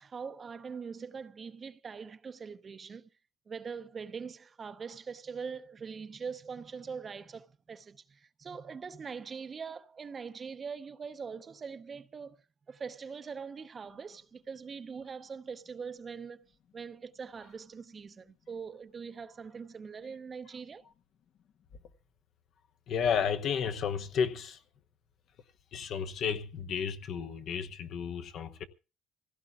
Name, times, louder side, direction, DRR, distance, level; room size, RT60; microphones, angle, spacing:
voice 1, 0.0-3.1 3.5-12.4 12.7-16.5 16.7-20.8, right 5 dB, 30° right, 0.7 m, -42 dB
voice 2, 22.9-24.6 25.7-28.6, left 7 dB, 60° left, 1.0 m, -32 dB
26.0 x 16.0 x 2.5 m
cardioid pair, 120°, 0 cm